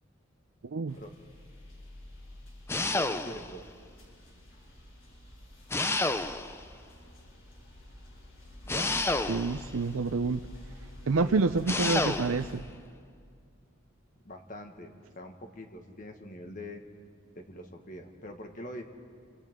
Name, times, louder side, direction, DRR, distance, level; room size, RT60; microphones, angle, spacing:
voice 1, 0.6-1.0 9.3-10.4 11.1-12.6, right 4 dB, 80° right, 8 dB, 0.5 m, -28 dB
sound 1, 0.9-12.6, left 1 dB, 70° left, 7.3 m, -49 dB
sound 2, 2.7-3.6 5.7-6.7 8.7-9.7 11.7-12.5, left 2 dB, 10° left, 0.5 m, -30 dB
voice 2, 2.9-3.6 8.6-8.9 11.2-11.4 14.2-16.8 17.3-18.8, left 1 dB, 40° left, 4 dB, 1.6 m, -44 dB
28.5 x 26.0 x 3.7 m, 2.2 s
head